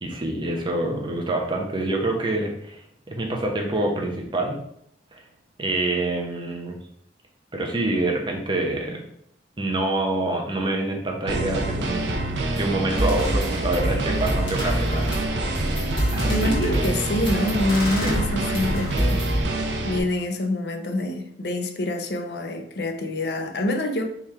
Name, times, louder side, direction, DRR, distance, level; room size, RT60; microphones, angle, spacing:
voice 1, 0.0-4.6 5.1-5.2 5.6-6.8 7.5-9.0 9.6-12.2 12.5-15.1 16.1-16.8 18.0-18.2, right 2 dB, 25° right, 0.8 m, -26 dB
sound 1, 11.3-20.0, right 2 dB, 70° right, 0.6 m, -27 dB
sound 2, 12.6-12.7 13.0-19.4, equal, 30° left, 1.7 m, -27 dB
voice 2, 16.3-19.2 19.8-24.1, left 1 dB, 60° left, 0.6 m, -26 dB
3.6 x 3.2 x 4.3 m
head